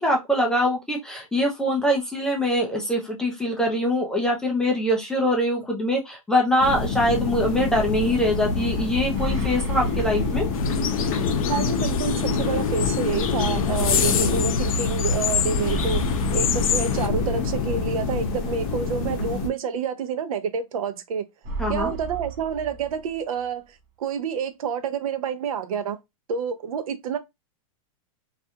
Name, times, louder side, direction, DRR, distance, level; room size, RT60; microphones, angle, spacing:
voice 1, 0.0-10.5 21.6-21.9, equal, 5° left, 0.3 m, -23 dB
sound 1, 6.6-19.5, left 4 dB, 40° left, 0.8 m, -26 dB
sound 2, 9.1-11.2 11.5-11.6 15.6-17.6 21.4-23.4, right 4 dB, 35° right, 0.8 m, -34 dB
sound 3, 10.5-17.1, left 9 dB, 85° left, 0.4 m, -28 dB
voice 2, 11.5-16.0 16.3-21.3 21.7-26.0 26.3-27.2, right 6 dB, 80° right, 0.5 m, -28 dB
2.4 x 2.1 x 2.7 m
supercardioid pair, 155°, 18 cm